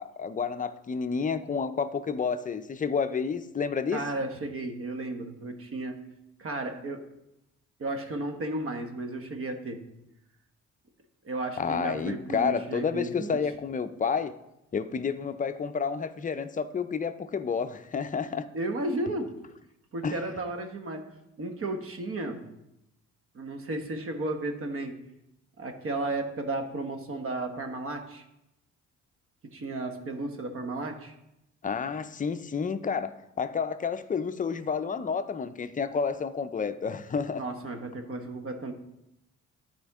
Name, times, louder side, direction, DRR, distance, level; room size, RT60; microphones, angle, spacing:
voice 1, 0.0-4.0 11.6-14.3 14.7-18.5 20.0-20.2 31.6-37.4, left 6 dB, 25° left, 0.5 m, -30 dB
voice 2, 3.9-6.0 6.4-7.1 7.8-9.8 11.2-13.4 18.5-19.3 19.9-21.0 21.4-22.4 23.3-25.0 25.6-28.2 29.4-31.1 37.4-38.7, right 2 dB, 45° right, 1.2 m, -33 dB
12.5 x 4.4 x 3.5 m
cardioid pair, 90°, 30 cm